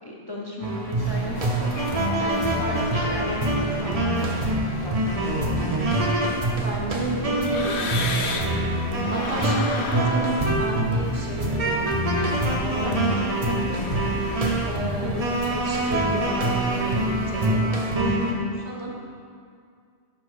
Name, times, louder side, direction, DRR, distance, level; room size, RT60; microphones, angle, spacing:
voice 1, 0.0-5.0 12.8-13.1 13.5-13.7 15.0-15.2 18.0-18.3, left 1 dB, 25° left, -4 dB, 0.7 m, -35 dB
sound 1, 0.6-18.3, right 1 dB, 35° right, 0.8 m, -25 dB
sound 2, 1.0-17.5, left 1 dB, 50° left, 1.3 m, -38 dB
sound 3, 6.0-8.6 9.0-12.0, left 4 dB, 70° left, 0.9 m, -33 dB
voice 2, 6.6-7.8 9.1-13.3 14.7-17.7 17.9-18.3 18.6-18.9, right 1 dB, 75° right, -2 dB, 1.4 m, -31 dB
6.1 x 5.3 x 4.8 m, 2.2 s
omnidirectional pair, 1.2 m